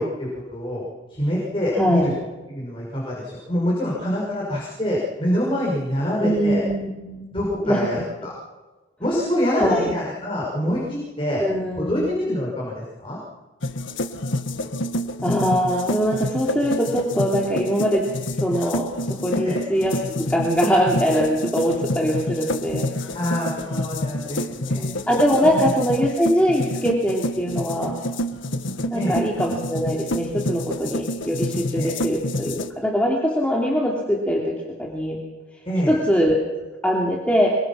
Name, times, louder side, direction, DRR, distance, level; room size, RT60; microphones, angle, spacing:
voice 1, 0.0-2.1 2.5-6.6 7.3-8.3 9.0-11.4 11.8-13.2 19.4-19.6 23.1-24.8 25.4-25.7 28.9-29.2 31.7-31.9 35.6-35.9, equal, 25° left, -5 dB, 6.1 m, -25 dB
voice 2, 1.8-2.1 6.2-7.3 7.7-7.8 9.6-9.9 11.4-12.0 15.2-18.0 18.4-18.9 19.2-22.9 24.8-27.9 28.9-35.2 35.9-36.4 36.8-37.5, equal, 5° left, -3 dB, 2.9 m, -22 dB
sound 1, 13.6-32.7, left 1 dB, 80° left, 1.5 m, -28 dB
26.5 x 23.5 x 6.1 m, 1.2 s
head